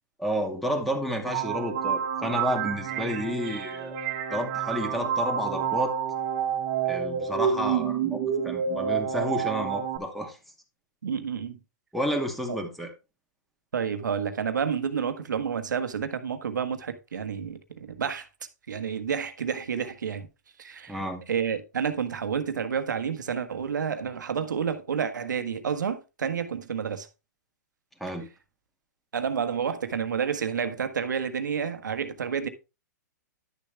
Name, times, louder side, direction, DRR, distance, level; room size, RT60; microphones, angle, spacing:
voice 1, 0.2-4.0 4.3-5.9 6.9-10.4 11.9-12.9 20.9-21.2 28.0-28.3, equal, ahead, 2.3 m, -30 dB
sound 1, 1.2-10.0, right 8 dB, 45° right, 1.7 m, -29 dB
voice 2, 11.0-11.6 12.5-12.6 13.7-18.3 18.7-20.3 20.6-27.1 29.1-32.5, right 7 dB, 85° right, 1.5 m, -30 dB
11.0 x 7.0 x 3.4 m
hypercardioid pair, 135°, 10 cm